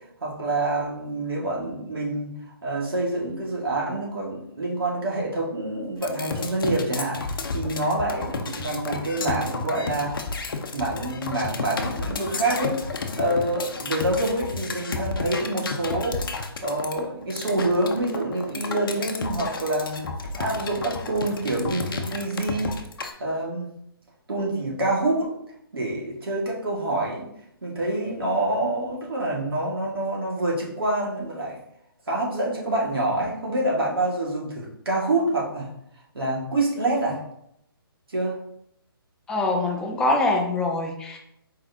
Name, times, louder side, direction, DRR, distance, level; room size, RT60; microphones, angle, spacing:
voice 1, 0.2-2.4 2.6-7.3 7.5-10.2 10.7-12.8 13.2-16.2 16.6-20.0 20.4-22.8 23.2-23.7 24.3-25.3 25.7-27.3 27.6-31.6 32.1-35.7 36.1-37.2 38.1-38.4, right 2 dB, 70° right, -3 dB, 1.8 m, -26 dB
sound 1, 6.0-23.1, left 4 dB, 60° left, 0.7 m, -31 dB
voice 2, 39.3-41.2, left 2 dB, 5° left, 0 dB, 0.4 m, -24 dB
4.7 x 3.8 x 2.7 m, 0.75 s
figure-of-eight pair, 145°, 13 cm